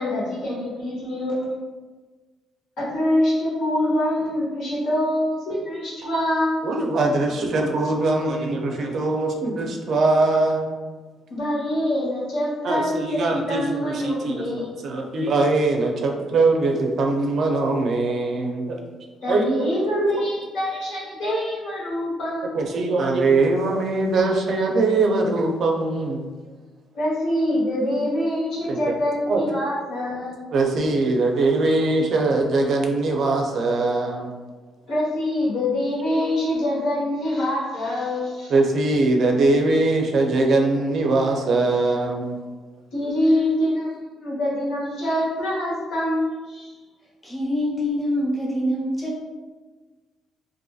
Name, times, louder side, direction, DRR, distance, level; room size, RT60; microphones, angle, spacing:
voice 1, 0.0-1.5 2.8-6.6 11.3-14.7 19.2-22.8 26.9-30.5 34.9-38.5 42.9-46.7, left 1 dB, 80° left, -6 dB, 1.1 m, -25 dB
voice 2, 6.6-10.8 12.6-18.8 19.3-19.7 22.5-26.3 27.8-28.0 28.7-28.8 29.3-29.4 30.5-34.3 38.5-42.4, right 2 dB, 65° right, 2 dB, 0.4 m, -22 dB
voice 3, 47.2-49.2, equal, 20° left, -5 dB, 1.0 m, -25 dB
2.6 x 2.5 x 2.3 m, 1.3 s
cardioid pair, 90°, 0 cm